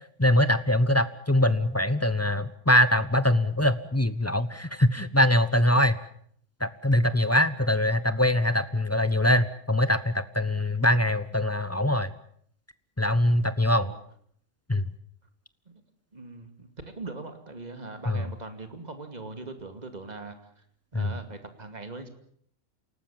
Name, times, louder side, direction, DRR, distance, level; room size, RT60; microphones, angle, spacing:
voice 1, 0.2-6.0 6.6-12.1 13.0-13.9 14.7-14.8 18.1-18.2 20.9-21.1, left 1 dB, 10° left, 13 dB, 0.9 m, -23 dB
voice 2, 13.7-14.0 16.1-20.4 20.9-22.1, right 3 dB, 30° right, 7 dB, 2.6 m, -41 dB
28.5 x 19.0 x 7.3 m, 0.63 s
omnidirectional pair, 1.5 m